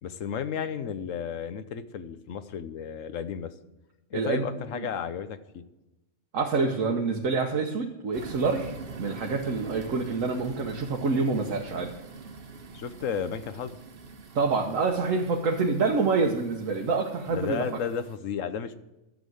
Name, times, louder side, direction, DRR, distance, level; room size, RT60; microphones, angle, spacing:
voice 1, 0.0-3.5 4.1-5.6 12.7-13.8 17.3-18.8, left 7 dB, 85° left, 11 dB, 1.2 m, -33 dB
voice 2, 4.1-4.5 4.7-4.9 6.3-11.9 14.3-17.7, right 4 dB, 90° right, 0 dB, 1.5 m, -27 dB
sound 1, 8.1-18.2, right 4 dB, 50° right, 1.2 m, -44 dB
12.0 x 7.3 x 7.8 m, 0.98 s
omnidirectional pair, 1.3 m